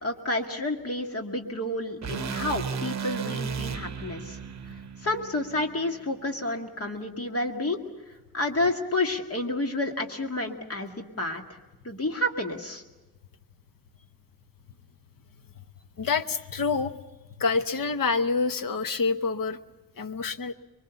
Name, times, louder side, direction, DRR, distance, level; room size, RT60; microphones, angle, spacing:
voice 1, 0.0-4.4 5.0-7.8 8.3-11.4 11.8-12.8, left 2 dB, 40° left, 3 dB, 2.1 m, -30 dB
sound 1, 2.0-6.2, right 7 dB, 45° right, 1.0 m, -35 dB
voice 2, 16.0-17.0 17.3-19.6 20.0-20.5, left 4 dB, 60° left, 10 dB, 1.1 m, -27 dB
25.0 x 23.0 x 7.0 m, 1.1 s
wide cardioid pair, 175°, 37 cm